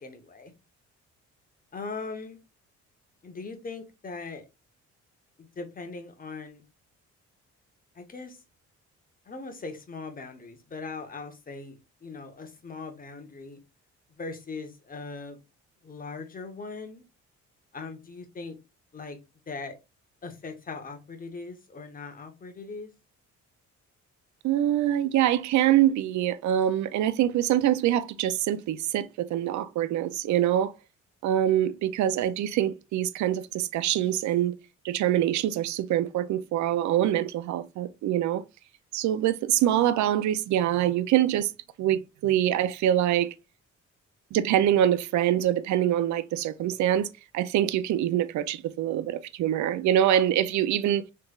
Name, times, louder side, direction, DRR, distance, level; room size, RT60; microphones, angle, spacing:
voice 1, 0.0-0.5 1.7-2.4 3.2-4.4 5.4-6.6 7.9-8.4 9.2-13.6 14.1-15.4 15.8-17.0 17.7-18.6 18.9-19.2 19.5-19.8 20.2-22.9, left 4 dB, 30° left, 1.0 m, -40 dB
voice 2, 24.4-30.7 31.2-34.6 34.8-38.4 38.9-41.5 41.8-43.3 44.3-47.1 47.3-51.0, right 11 dB, 70° right, 0.5 m, -24 dB
3.3 x 3.2 x 2.3 m
cardioid pair, 90°, 30 cm